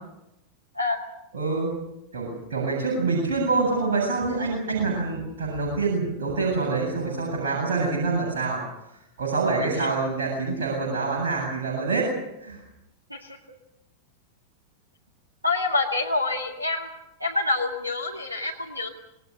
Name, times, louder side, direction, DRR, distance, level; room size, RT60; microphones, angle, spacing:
voice 1, 1.3-1.7 2.1-8.6 9.2-12.1 12.4-12.6, right 3 dB, 60° right, -3 dB, 8.0 m, -26 dB
voice 2, 15.4-16.9 17.2-18.9, left 3 dB, 85° right, 3 dB, 2.0 m, -26 dB
27.0 x 20.5 x 6.7 m, 0.89 s
figure-of-eight pair, 90°, 0 cm